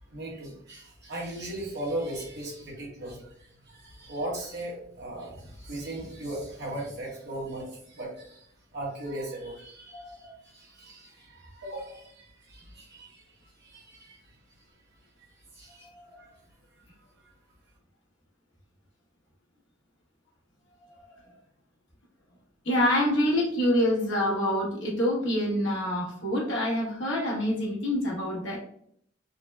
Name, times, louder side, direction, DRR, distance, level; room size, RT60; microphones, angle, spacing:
voice 1, 0.1-3.2 3.7-8.4 8.7-10.0 10.5-13.2 13.6-14.2 15.6-15.9 16.2-16.3, right 1 dB, 60° right, -3 dB, 1.0 m, -37 dB
voice 2, 9.9-10.3 15.8-16.2 20.8-20.9 22.6-28.6, left 1 dB, 75° left, -4 dB, 1.2 m, -26 dB
3.8 x 2.1 x 2.2 m, 0.66 s
head